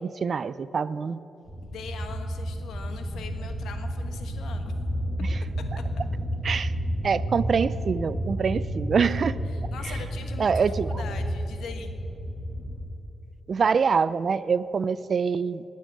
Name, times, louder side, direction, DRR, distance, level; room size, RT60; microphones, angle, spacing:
voice 1, 0.2-1.2 5.2-5.3 6.4-6.7 7.0-9.3 9.8-9.9 10.4-11.0 13.5-15.6, right 5 dB, 40° right, 16 dB, 0.4 m, -25 dB
sound 1, 1.5-12.9, equal, 10° left, 1.9 m, -31 dB
voice 2, 1.6-4.7 9.5-10.5 10.9-12.0, left 5 dB, 85° left, 6 dB, 1.2 m, -42 dB
19.0 x 7.4 x 8.7 m, 2.9 s
wide cardioid pair, 160°, 0 cm